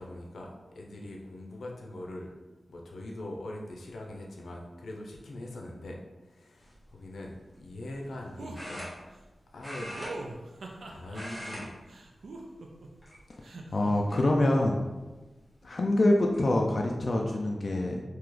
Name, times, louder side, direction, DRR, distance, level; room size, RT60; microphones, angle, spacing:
voice 1, 0.0-2.3 2.7-8.9 9.5-9.9 10.8-11.7, left 1 dB, 90° left, 0 dB, 0.6 m, -42 dB
sound 1, 6.6-6.9 8.5-9.3 9.6-10.8 11.1-11.6 11.9-12.2 13.0-13.5 14.1-14.2 15.6-15.7 16.0-16.4, equal, 5° left, 1.3 m, -41 dB
sound 2, 8.4-8.6 10.0-11.2 11.9-12.9 13.4-13.9, right 2 dB, 85° right, 0.5 m, -42 dB
voice 2, 13.7-14.9 15.6-18.0, left 1 dB, 45° left, 0 dB, 0.4 m, -25 dB
3.1 x 2.8 x 3.8 m, 1.2 s
wide cardioid pair, 135°, 0 cm